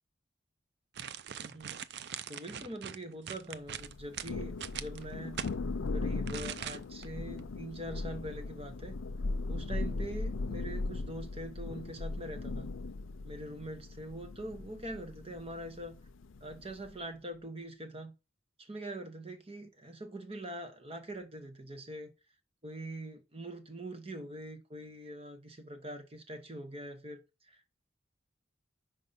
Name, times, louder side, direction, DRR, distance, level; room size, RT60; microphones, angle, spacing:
sound 1, 0.9-5.5 6.3-7.1 7.4-7.5, right 9 dB, 60° right, 0.5 m, -41 dB
voice 1, 1.4-1.8 2.3-5.4 5.9-9.0 9.5-12.7 13.2-16.0 16.4-18.1 18.6-22.1 22.6-27.8, right 1 dB, 30° right, 1.1 m, -43 dB
Thunder, 3.8-17.0, left 3 dB, 90° left, 0.5 m, -38 dB
5.2 x 5.1 x 5.7 m
head